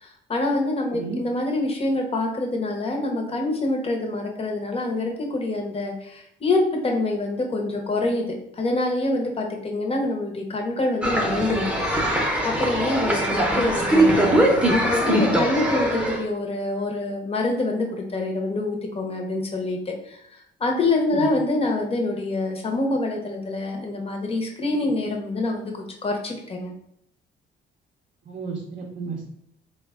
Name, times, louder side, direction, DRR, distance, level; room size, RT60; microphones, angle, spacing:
voice 1, 0.0-8.3 8.6-11.8 12.4-14.3 14.7-25.7 26.0-26.7, left 2 dB, 30° left, 1 dB, 0.8 m, -26 dB
sound 1, 11.0-16.2, right 1 dB, 5° right, 0.7 m, -21 dB
voice 2, 13.4-13.9 21.1-21.3 28.3-29.3, right 4 dB, 40° right, 1 dB, 0.6 m, -33 dB
3.3 x 2.2 x 3.5 m, 0.74 s
cardioid pair, 90°, 20 cm